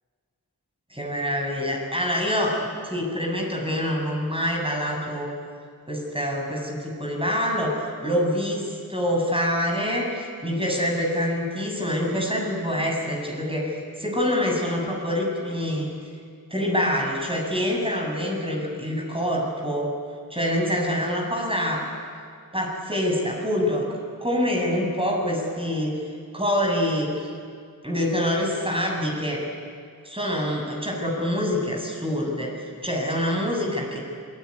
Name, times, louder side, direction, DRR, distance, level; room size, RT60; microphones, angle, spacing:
voice 1, 0.9-5.3 5.9-15.9 16.5-19.9 20.3-21.8 22.5-23.8 24.2-26.0 26.3-27.3 27.8-29.4 30.0-34.0, equal, 15° right, -1 dB, 7.1 m, -26 dB
27.5 x 20.0 x 9.7 m, 2.2 s
wide cardioid pair, 60°, 37 cm